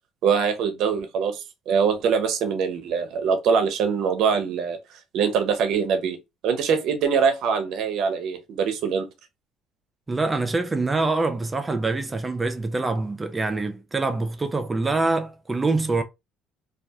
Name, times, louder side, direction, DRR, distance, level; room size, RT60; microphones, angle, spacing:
voice 1, 0.2-6.2 6.4-9.1, right 6 dB, 65° right, 0.6 m, -23 dB
voice 2, 10.1-16.0, right 3 dB, 20° right, 0.4 m, -25 dB
2.3 x 2.2 x 2.6 m
cardioid pair, 100°, 0 cm